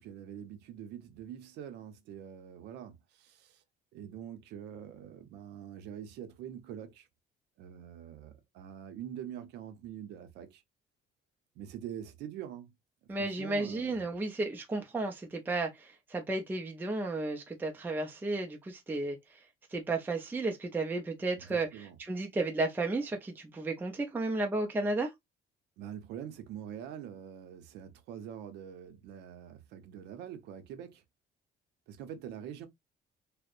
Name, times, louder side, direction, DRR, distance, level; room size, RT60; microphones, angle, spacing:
voice 1, 0.0-3.6 3.9-7.1 7.6-10.6 11.6-12.7 13.1-14.1 21.4-22.0 25.8-31.0 31.9-32.7, right 9 dB, 85° right, 0.6 m, -45 dB
voice 2, 13.1-19.4 19.7-25.1, right 2 dB, 10° right, 0.4 m, -33 dB
2.6 x 2.0 x 2.4 m
cardioid pair, 110°, 17 cm